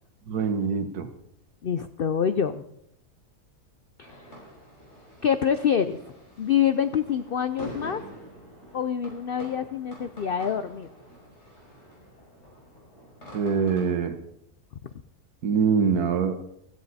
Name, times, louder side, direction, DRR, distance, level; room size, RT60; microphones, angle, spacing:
voice 1, 0.3-1.1 13.3-14.2 15.4-16.4, right 6 dB, 70° right, 8 dB, 1.7 m, -24 dB
voice 2, 1.6-2.6 4.0-4.3 5.2-6.0 6.4-8.0 8.7-10.9, left 8 dB, 85° left, 11 dB, 0.5 m, -26 dB
sound 1, 4.0-13.9, right 1 dB, 40° left, 6.3 m, -46 dB
15.5 x 14.0 x 4.1 m, 0.77 s
omnidirectional pair, 1.7 m